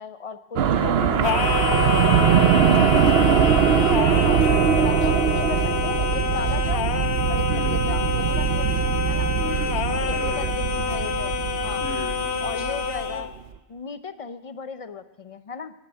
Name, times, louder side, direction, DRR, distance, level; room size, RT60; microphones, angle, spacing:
voice 1, 0.0-1.1 1.7-1.8 4.2-7.0 7.3-9.3 10.1-11.4 11.6-11.8 12.4-13.3 13.7-15.7, left 5 dB, 40° left, 12 dB, 0.6 m, -36 dB
sound 1, 0.6-13.1, right 8 dB, 70° right, 0.9 m, -22 dB
voice 2, 0.7-3.2 7.5-7.8 9.4-10.5 11.8-12.2 12.6-12.7, left 2 dB, 70° left, 1 dB, 2.6 m, -36 dB
Singing, 1.2-13.3, left 6 dB, 85° left, 1.1 m, -27 dB
11.0 x 9.7 x 9.0 m, 1.0 s
omnidirectional pair, 1.1 m